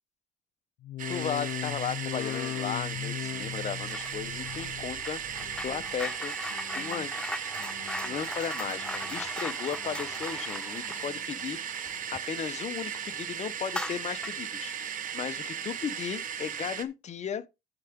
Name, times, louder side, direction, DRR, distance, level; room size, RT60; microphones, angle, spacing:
sound 1, 0.8-6.1 6.5-7.1 7.5-8.2 8.6-9.3 9.7-10.4 10.9-11.4 12.0-12.1, left 14 dB, 65° left, 0.6 m, -39 dB
sound 2, 1.0-16.8, right 8 dB, 50° right, 1.2 m, -37 dB
voice 1, 1.1-6.3 6.7-7.1 8.0-11.6 12.1-14.7 15.0-17.5, left 8 dB, 40° left, 1.0 m, -36 dB
sound 3, 3.9-4.2 4.4-12.6 13.0-13.1 13.6-14.5, left 1 dB, 5° left, 0.4 m, -39 dB
13.5 x 4.9 x 3.7 m
cardioid pair, 110°, 17 cm